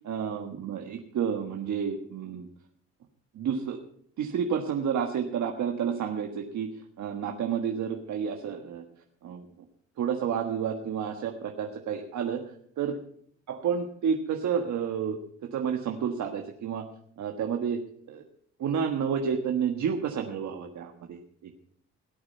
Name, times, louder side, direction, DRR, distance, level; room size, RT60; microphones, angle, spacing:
voice 1, 0.0-2.5 3.3-3.8 4.2-6.7 7.0-8.8 9.2-9.4 10.0-12.9 13.5-15.2 15.5-16.8 17.2-17.8 18.1-18.2 18.6-21.5, right 7 dB, 70° right, 3 dB, 1.5 m, -30 dB
17.5 x 8.8 x 5.7 m, 0.64 s
cardioid pair, 90°, 30 cm